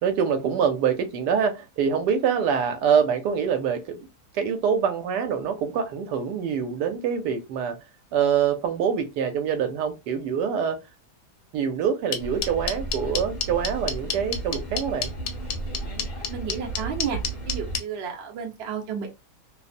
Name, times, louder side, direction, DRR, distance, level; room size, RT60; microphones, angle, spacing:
voice 1, 0.0-4.1 4.3-7.8 8.1-10.8 11.5-15.1, right 7 dB, 85° right, 1.2 m, -25 dB
sound 1, 12.1-17.8, left 7 dB, 75° left, 1.1 m, -27 dB
sound 2, 12.2-17.8, right 3 dB, 35° left, 0.8 m, -34 dB
voice 2, 16.3-17.2 17.5-19.1, right 7 dB, 50° right, 0.8 m, -32 dB
2.8 x 2.0 x 2.4 m
omnidirectional pair, 1.7 m